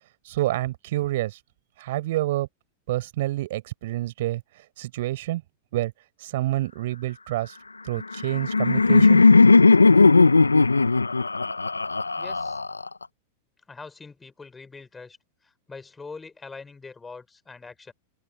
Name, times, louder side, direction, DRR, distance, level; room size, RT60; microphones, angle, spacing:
voice 1, 0.2-1.4 1.8-2.5 2.9-4.4 4.8-5.4 5.7-5.9 6.2-7.6 7.8-9.4, right 16 dB, 60° right, 6.3 m, -28 dB
Laughter, 8.0-13.0, left 3 dB, 85° left, 1.4 m, -17 dB
voice 2, 12.2-12.6 13.7-15.2 15.4-17.9, left 4 dB, 15° left, 6.0 m, -43 dB
open air
figure-of-eight pair, 95°, 0 cm